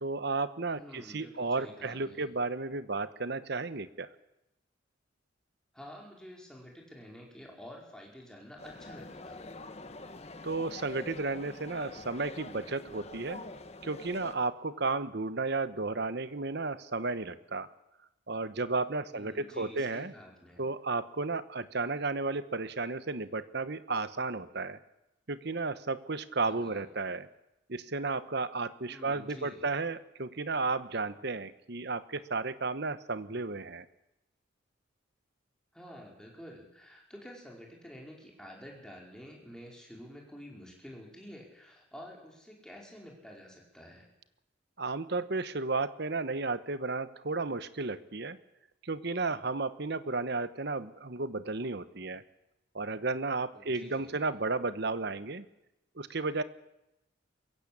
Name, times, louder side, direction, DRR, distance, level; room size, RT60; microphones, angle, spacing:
voice 1, 0.0-4.1 10.4-13.4 13.8-17.7 18.3-20.1 20.6-24.8 25.3-27.3 27.7-33.9 44.8-48.4 48.8-52.2 52.7-55.4 56.0-56.4, right 3 dB, 55° right, 14 dB, 1.1 m, -33 dB
voice 2, 0.7-2.3 5.7-9.4 19.1-20.6 26.4-26.9 28.9-29.7 35.7-44.1 53.5-54.3, equal, 5° left, -1 dB, 4.7 m, -49 dB
sound 1, 8.6-14.3, left 2 dB, 30° left, 1.4 m, -45 dB
22.5 x 15.5 x 8.7 m, 0.91 s
head